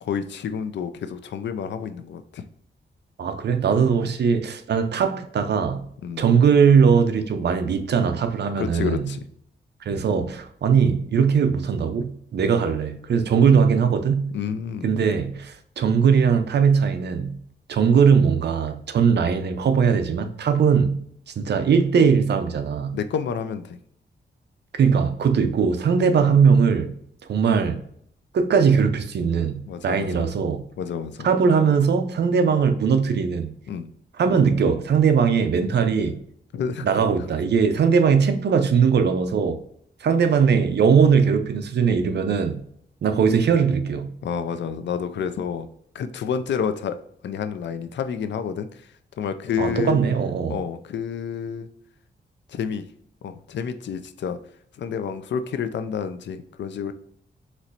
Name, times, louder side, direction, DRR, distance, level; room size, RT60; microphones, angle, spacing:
voice 1, 0.0-2.4 6.0-6.3 8.6-9.2 14.3-15.0 22.9-23.8 29.7-30.3 30.8-31.3 33.7-33.9 36.5-37.0 44.2-45.7 45.9-47.0 47.2-48.9 49.2-50.0 50.5-51.7 52.5-52.9 53.2-54.4 54.7-56.9, left 7 dB, 80° left, 0.4 m, -29 dB
voice 2, 3.2-5.9 6.2-9.1 9.8-14.3 14.8-17.4 17.7-21.0 21.4-23.0 24.8-26.9 27.3-27.8 28.3-30.6 31.2-33.6 34.2-36.2 36.8-39.6 40.0-42.6 43.0-44.2 49.6-50.6, right 6 dB, 70° right, 0.6 m, -20 dB
4.2 x 3.1 x 2.5 m
wide cardioid pair, 130°, 18 cm